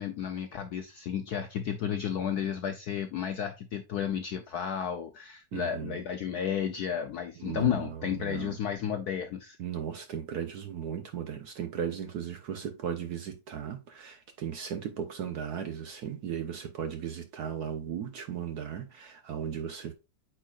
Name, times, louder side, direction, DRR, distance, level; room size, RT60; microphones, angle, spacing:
voice 1, 0.0-9.6, left 8 dB, 75° left, 0.9 m, -32 dB
voice 2, 5.5-6.0 7.4-8.6 9.6-19.9, right 8 dB, 65° right, 1.0 m, -36 dB
8.6 x 4.7 x 2.4 m
omnidirectional pair, 2.3 m